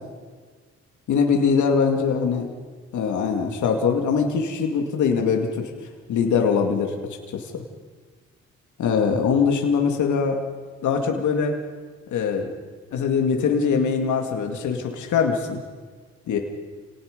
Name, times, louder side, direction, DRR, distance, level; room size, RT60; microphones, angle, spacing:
voice 1, 1.1-2.5 2.9-5.7 6.1-6.9 7.3-7.6 8.8-10.4 10.8-11.6 12.1-12.5 12.9-15.6 16.3-16.4, left 6 dB, 75° left, 3 dB, 2.3 m, -22 dB
28.5 x 18.5 x 5.3 m, 1.5 s
cardioid pair, 90°, 30 cm